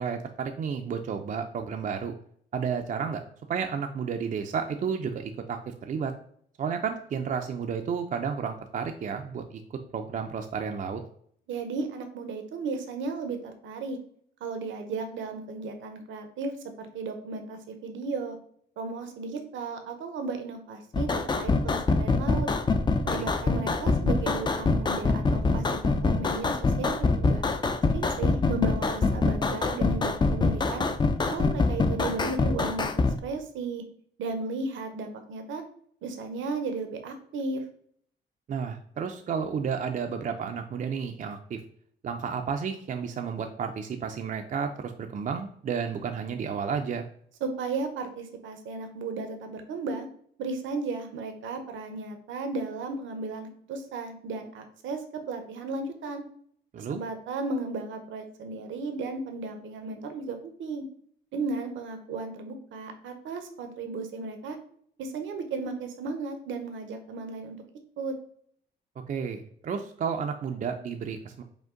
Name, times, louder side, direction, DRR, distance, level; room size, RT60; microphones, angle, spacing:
voice 1, 0.0-2.1 2.5-3.2 3.5-6.1 6.6-9.6 9.9-11.0 23.1-23.3 38.5-41.6 42.0-47.0 56.7-57.0 69.1-71.4, right 6 dB, 40° right, 5 dB, 0.4 m, -32 dB
voice 2, 11.5-14.0 14.4-18.4 18.8-22.5 23.0-27.4 27.9-30.9 31.3-33.8 34.2-35.6 36.0-37.6 47.4-50.1 50.4-56.2 56.8-60.8 61.3-64.6 65.0-67.6 68.0-68.1, right 3 dB, 75° right, 7 dB, 0.7 m, -35 dB
sound 1, 20.9-33.2, left 3 dB, 20° left, 0.4 m, -25 dB
5.1 x 2.1 x 3.7 m, 0.63 s
cardioid pair, 90°, 20 cm